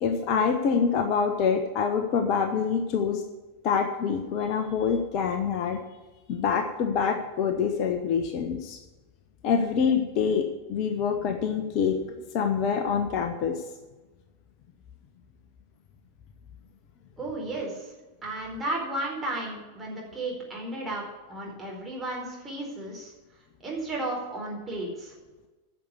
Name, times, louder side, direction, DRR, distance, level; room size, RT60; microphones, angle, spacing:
voice 1, 0.0-3.2 3.6-5.8 6.3-8.8 9.4-12.0 12.3-13.6, left 6 dB, 40° left, 6 dB, 1.1 m, -26 dB
voice 2, 17.2-17.9 18.2-21.0 21.3-23.1 23.6-25.1, right 2 dB, 15° right, -2 dB, 4.5 m, -33 dB
11.0 x 6.8 x 8.3 m, 1.2 s
figure-of-eight pair, 90°, 0 cm